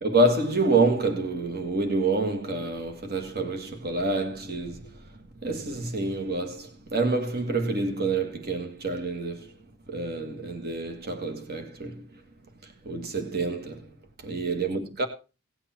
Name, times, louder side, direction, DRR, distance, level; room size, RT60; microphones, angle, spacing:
voice 1, 0.0-4.9 5.4-9.5 9.9-12.0 12.9-13.8 14.2-15.1, right 2 dB, 45° right, 1.8 m, -27 dB
17.5 x 8.3 x 4.4 m
head